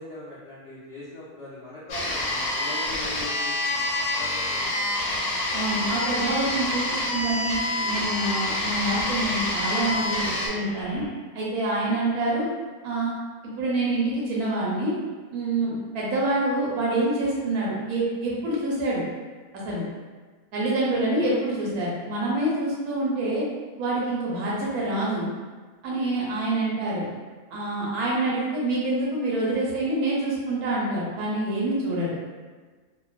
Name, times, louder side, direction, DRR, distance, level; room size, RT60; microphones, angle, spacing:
voice 1, 0.0-5.3 11.8-12.2 20.9-21.3 26.1-26.3, left 1 dB, 60° left, -10 dB, 0.7 m, -42 dB
sound 1, 1.9-10.5, left 1 dB, 90° left, 1.2 m, -27 dB
voice 2, 5.5-7.6 7.9-10.2 10.5-11.0 11.3-12.5 12.8-13.1 13.6-14.9 15.3-19.0 19.5-19.8 20.5-23.4 23.8-25.3 25.8-27.1 27.5-32.1, right 2 dB, 85° right, -5 dB, 1.2 m, -26 dB
sound 2, 5.9-11.1, equal, 45° left, 1.1 m, -42 dB
2.9 x 2.0 x 2.3 m, 1.4 s
omnidirectional pair, 1.5 m